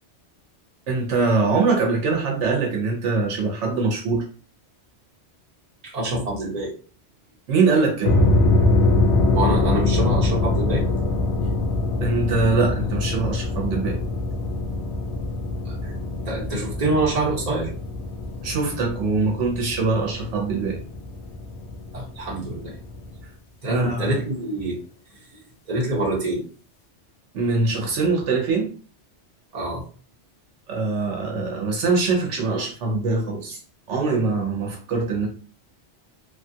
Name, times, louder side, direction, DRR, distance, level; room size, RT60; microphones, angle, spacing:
voice 1, 0.9-4.2 7.5-8.2 12.0-14.0 18.4-20.8 23.7-24.2 27.3-28.7 30.7-33.6 33.9-35.3, right 3 dB, 75° right, 0 dB, 1.0 m, -23 dB
voice 2, 5.8-6.7 9.3-10.8 15.6-16.0 16.2-17.7 21.9-22.7 23.6-24.8 25.7-26.4 29.5-29.8, right 1 dB, 35° right, -5 dB, 1.1 m, -25 dB
sound 1, 8.0-23.2, left 2 dB, 70° left, 0.9 m, -24 dB
3.2 x 2.3 x 2.7 m, 0.40 s
omnidirectional pair, 1.2 m